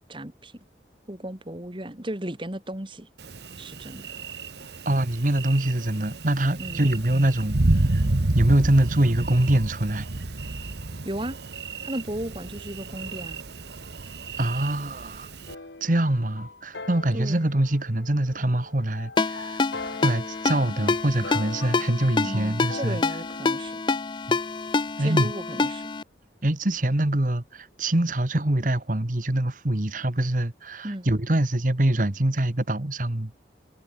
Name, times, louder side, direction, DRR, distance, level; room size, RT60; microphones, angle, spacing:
voice 1, 0.1-0.6 1.1-3.1 3.6-4.1 6.6-6.9 11.0-11.4 11.8-13.5 17.1-17.5 22.2-23.8 25.0-25.9 30.8-31.1, right 1 dB, 25° right, 2.0 m, -35 dB
Thunder, 3.2-15.5, right 2 dB, 65° right, 1.2 m, -30 dB
voice 2, 4.8-7.6 7.9-8.0 8.3-10.1 14.4-15.3 15.8-19.6 20.0-23.0 24.3-24.4 25.0-25.3 26.4-33.3, right 1 dB, 45° right, 1.5 m, -24 dB
sound 1, 15.5-23.7, left 3 dB, 70° left, 2.1 m, -41 dB
Ringtone, 19.2-26.0, left 4 dB, 25° left, 0.4 m, -27 dB
head